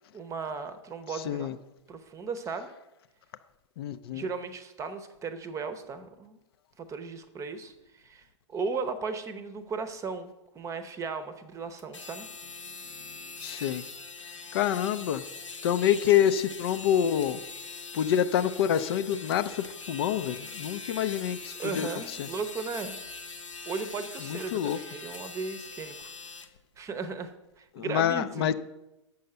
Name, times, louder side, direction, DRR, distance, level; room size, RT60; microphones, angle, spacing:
voice 1, 0.1-1.5 1.9-2.7 4.1-6.4 6.8-12.3 21.6-23.0 23.7-26.1 26.8-27.3 27.6-28.5, right 4 dB, 20° right, 10 dB, 0.8 m, -36 dB
voice 2, 3.8-4.2 13.4-13.8 14.5-15.2 15.6-17.4 17.9-21.9 22.2-22.3 24.2-24.8 27.8-28.5, left 10 dB, 55° left, 11 dB, 0.5 m, -27 dB
sound 1, 11.8-26.5, left 4 dB, 90° left, 0.9 m, -42 dB
6.9 x 5.6 x 6.6 m, 0.96 s
figure-of-eight pair, 105°, 16 cm